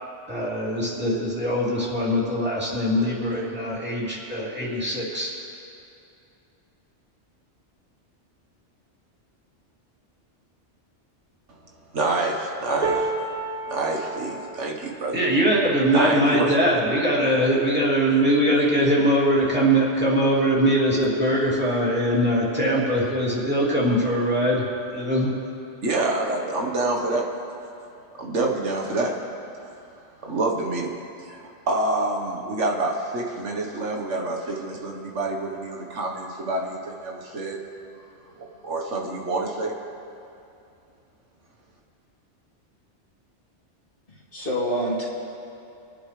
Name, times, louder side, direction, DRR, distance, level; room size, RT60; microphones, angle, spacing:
voice 1, 0.3-5.3 15.1-24.6 24.9-25.3, equal, 10° right, -7 dB, 2.9 m, -22 dB
voice 2, 11.9-13.1 13.7-15.2 15.9-16.5 25.8-27.3 28.2-29.3 30.2-30.9 31.2-37.6 38.6-39.7, right 2 dB, 85° right, 0 dB, 1.7 m, -27 dB
sound 1, 12.8-19.0 19.5-19.7 20.0-20.8 21.8-21.9, right 3 dB, 45° right, 1.9 m, -34 dB
voice 3, 44.1-45.1, equal, 50° left, -5 dB, 2.8 m, -27 dB
26.0 x 9.9 x 3.3 m, 2.6 s
omnidirectional pair, 1.2 m